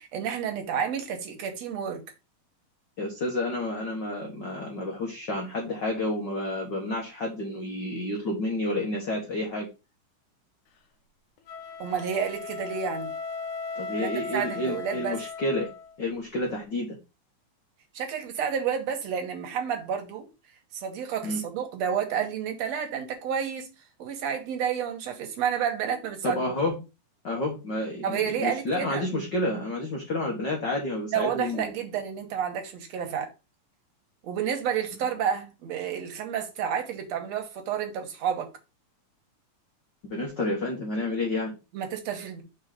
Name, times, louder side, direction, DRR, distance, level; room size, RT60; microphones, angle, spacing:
voice 1, 0.0-2.0 11.8-13.1 14.0-15.2 17.9-20.2 20.7-23.7 24.0-26.5 28.0-29.0 31.1-33.3 34.2-38.5 41.7-42.4, right 8 dB, 60° right, 2.2 m, -30 dB
voice 2, 3.0-9.7 13.7-15.7 16.0-17.0 21.2-21.4 26.2-26.8 27.2-31.7 40.1-41.6, left 1 dB, 50° left, 1.3 m, -30 dB
sound 1, 11.4-15.9, left 5 dB, 70° left, 2.4 m, -37 dB
6.3 x 4.0 x 4.9 m
omnidirectional pair, 3.8 m